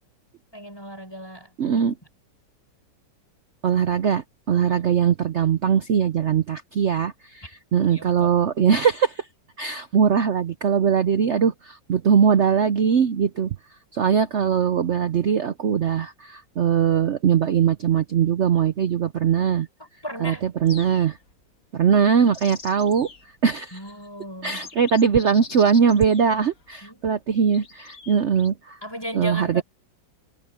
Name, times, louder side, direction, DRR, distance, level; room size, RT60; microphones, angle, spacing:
voice 1, 0.5-1.9 4.6-4.9 7.9-8.3 19.8-20.5 23.7-24.7 26.8-27.2 28.8-29.6, equal, 10° left, 5.9 m, -36 dB
voice 2, 1.6-1.9 3.6-7.4 7.7-9.3 9.6-13.5 13.9-19.7 20.2-20.3 20.6-21.2 21.7-23.1 23.4-23.8 24.4-28.8 29.1-29.6, right 7 dB, 70° right, 0.6 m, -21 dB
sound 1, 20.7-21.3 22.0-23.3 23.9-24.0 24.4-26.7 27.5-28.5, left 4 dB, 45° left, 2.2 m, -43 dB
omnidirectional pair, 2.0 m